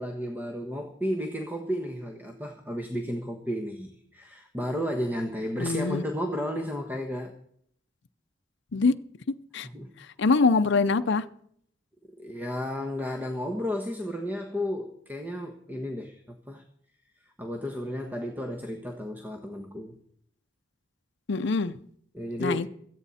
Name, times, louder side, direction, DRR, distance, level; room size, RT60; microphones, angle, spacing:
voice 1, 0.0-7.3 9.7-9.9 12.2-16.6 17.4-20.0 22.1-22.7, equal, 10° right, 3 dB, 1.2 m, -33 dB
voice 2, 5.6-6.0 8.7-8.9 9.5-9.7 10.2-11.3 21.3-21.8 22.4-22.7, left 4 dB, 65° left, 10 dB, 0.6 m, -23 dB
17.0 x 14.0 x 4.3 m, 0.66 s
head